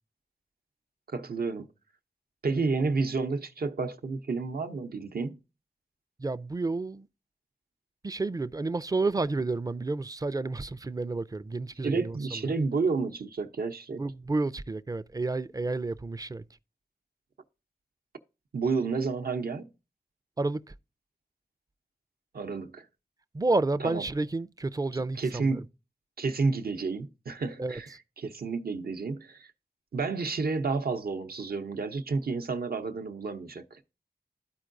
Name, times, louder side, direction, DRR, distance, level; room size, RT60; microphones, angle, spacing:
voice 1, 1.1-1.7 2.4-5.4 11.8-14.0 18.5-19.7 22.3-22.8 23.8-24.0 24.9-25.7 26.2-27.9 28.2-29.5 29.9-33.8, right 4 dB, 70° right, 0.7 m, -30 dB
voice 2, 6.2-7.1 8.0-12.4 14.0-16.4 20.4-20.7 23.3-25.6 27.6-27.8, right 3 dB, 20° right, 0.4 m, -30 dB
13.0 x 4.5 x 2.5 m
wide cardioid pair, 50°, 16 cm